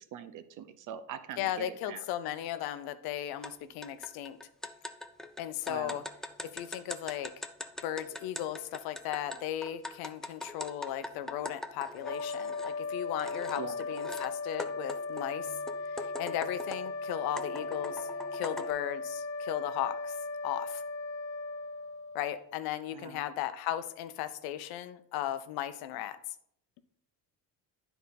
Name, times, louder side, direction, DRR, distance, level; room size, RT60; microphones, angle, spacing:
voice 1, 0.0-2.0 5.7-6.0 13.6-13.8 22.9-23.2, right 8 dB, 55° right, 12 dB, 0.7 m, -43 dB
voice 2, 1.4-4.4 5.4-6.0 6.4-7.3 7.8-15.5 15.9-20.2 20.4-20.8 22.1-26.2, left 12 dB, 75° left, 12 dB, 0.7 m, -36 dB
sound 1, 3.4-3.5 3.8-12.8 13.2-14.3 14.6-16.9 17.4-18.7, left 1 dB, ahead, 0.3 m, -42 dB
sound 2, 11.9-22.6, left 3 dB, 55° left, 1.0 m, -37 dB
9.3 x 4.0 x 3.9 m, 0.70 s
cardioid pair, 110°, 37 cm